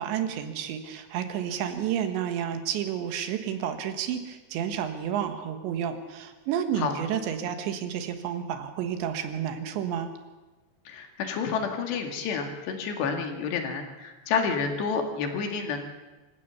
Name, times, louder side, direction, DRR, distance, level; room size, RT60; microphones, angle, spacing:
voice 1, 0.0-10.1, right 9 dB, 85° right, 7 dB, 3.7 m, -31 dB
voice 2, 10.9-15.8, left 5 dB, 75° left, 4 dB, 4.1 m, -29 dB
26.0 x 16.0 x 7.0 m, 1.2 s
omnidirectional pair, 5.1 m